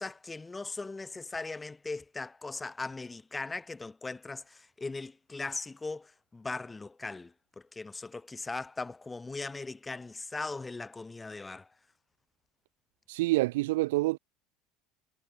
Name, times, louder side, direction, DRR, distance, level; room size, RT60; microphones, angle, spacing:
voice 1, 0.0-7.3 7.7-11.7, left 3 dB, 15° left, 2.8 m, -39 dB
voice 2, 13.1-14.2, right 19 dB, 75° right, 0.4 m, -27 dB
hypercardioid pair, 75°, 0 cm